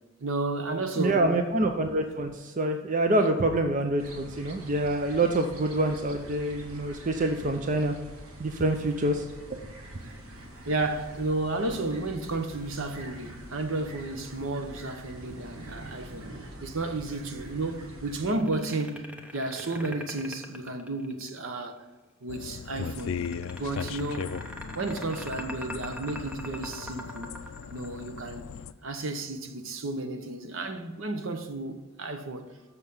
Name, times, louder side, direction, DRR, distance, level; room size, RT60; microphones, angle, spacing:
voice 1, 0.2-1.2 3.2-3.3 10.7-19.1 19.3-21.8 22.2-23.3 23.5-24.3 24.7-27.4 27.7-28.5 28.8-32.5, right 2 dB, 65° right, 0.9 m, -32 dB
voice 2, 1.0-7.9 8.4-9.2 9.5-9.6, right 1 dB, 35° right, 0.5 m, -26 dB
sound 1, 4.0-18.3, right 1 dB, 85° right, 1.4 m, -45 dB
sound 2, 18.4-21.5 22.9-28.4, equal, 5° right, 0.8 m, -41 dB
sound 3, 22.3-28.7, left 6 dB, 70° left, 0.4 m, -38 dB
6.9 x 6.7 x 5.4 m
head